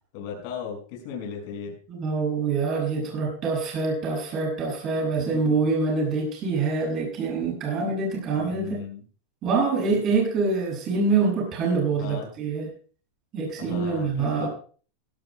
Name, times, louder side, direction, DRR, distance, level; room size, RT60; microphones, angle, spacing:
voice 1, 0.1-1.8 5.2-5.9 8.3-9.0 11.9-12.3 13.6-14.5, left 7 dB, 50° left, 0 dB, 5.6 m, -36 dB
voice 2, 1.9-8.8 9.4-12.7 13.3-14.5, right 4 dB, 30° right, -1 dB, 6.9 m, -25 dB
17.5 x 17.0 x 2.2 m, 0.41 s
supercardioid pair, 160°, 0 cm